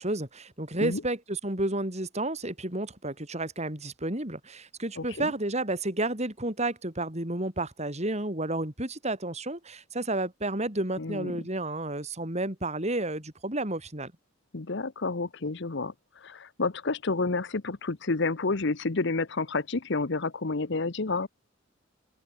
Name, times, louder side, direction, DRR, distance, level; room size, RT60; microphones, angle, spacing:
voice 1, 0.0-14.1, right 2 dB, 35° right, 4.4 m, -31 dB
voice 2, 5.0-5.3 11.0-11.3 14.5-21.3, left 3 dB, 60° left, 1.0 m, -30 dB
open air
head